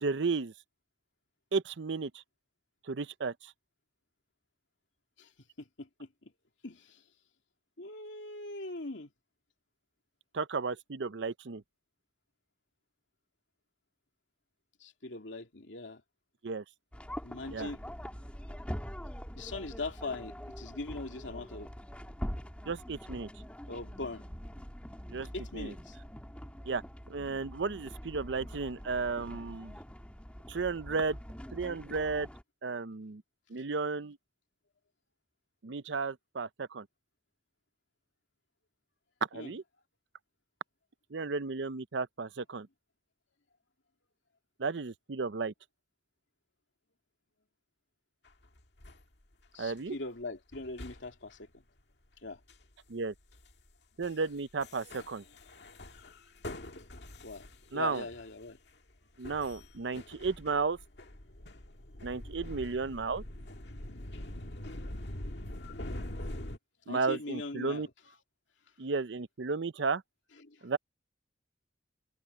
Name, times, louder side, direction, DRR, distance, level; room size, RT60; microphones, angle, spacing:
voice 1, 0.0-0.5 1.5-2.1 2.9-3.5 10.3-11.6 16.4-16.6 17.5-17.7 22.7-23.3 25.1-25.7 26.6-26.8 27.1-29.7 30.5-31.2 31.5-32.3 32.6-33.2 33.5-34.2 35.6-36.9 39.3-39.6 41.1-42.7 44.6-45.5 49.6-50.0 52.9-53.1 54.0-55.2 57.7-58.0 59.2-60.8 62.0-63.2 66.9-67.9 68.8-70.0 70.6-70.8, right 4 dB, 70° right, 0.6 m, -33 dB
voice 2, 5.6-6.3 6.6-7.0 7.8-9.1 14.8-16.0 17.2-17.8 19.3-21.7 23.7-24.3 25.3-26.0 39.3-39.5 49.5-51.5 52.2-52.4 57.2-57.5 57.7-58.6 66.9-67.9 70.4-70.7, left 2 dB, 80° left, 2.8 m, -41 dB
sound 1, 16.9-32.4, equal, 5° left, 2.3 m, -44 dB
sound 2, 48.2-49.0 49.4-49.8 50.5-51.4 52.5-52.7 53.1-53.7 54.0-54.3 54.6-58.7 59.2-66.6, left 1 dB, 65° left, 2.1 m, -44 dB
head